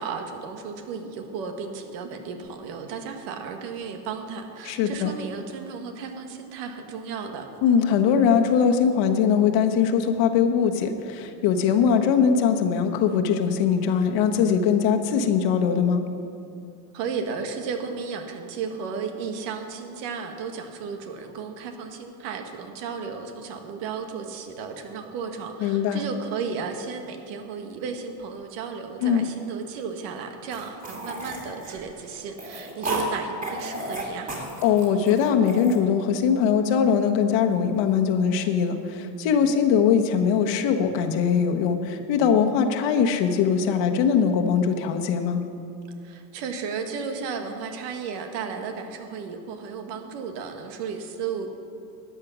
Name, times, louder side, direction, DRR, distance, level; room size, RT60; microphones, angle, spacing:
voice 1, 0.0-7.5 16.9-34.3 46.0-51.5, right 5 dB, 80° right, 5 dB, 1.6 m, -34 dB
voice 2, 4.6-5.1 7.6-16.0 25.6-26.0 29.0-29.3 34.6-45.4, left 7 dB, 65° left, 5 dB, 1.3 m, -21 dB
sound 1, 30.5-33.1 33.4-35.8, right 1 dB, 15° right, 2.5 m, -33 dB
13.0 x 8.8 x 6.2 m, 2.7 s
supercardioid pair, 115°, 47 cm